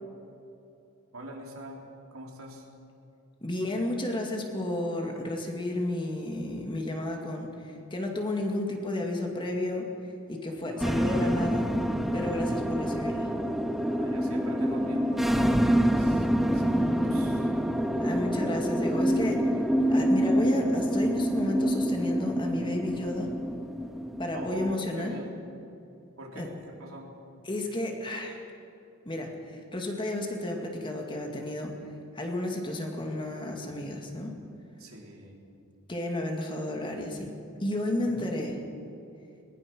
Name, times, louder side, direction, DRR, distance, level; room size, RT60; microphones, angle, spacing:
voice 1, 1.1-2.7 10.6-11.5 13.9-17.5 24.3-25.3 26.2-27.2 34.8-35.4 38.0-38.4, right 1 dB, 80° right, -1 dB, 3.8 m, -43 dB
voice 2, 3.4-11.7 12.1-13.3 18.0-19.5 19.9-23.3 24.2-25.1 26.3-26.5 27.5-28.4 29.0-31.7 32.1-34.3 35.9-37.3 37.6-38.6, left 1 dB, 25° left, 2 dB, 2.3 m, -32 dB
sound 1, 10.8-24.7, equal, ahead, 0.7 m, -27 dB
21.0 x 20.0 x 6.3 m, 2.7 s
head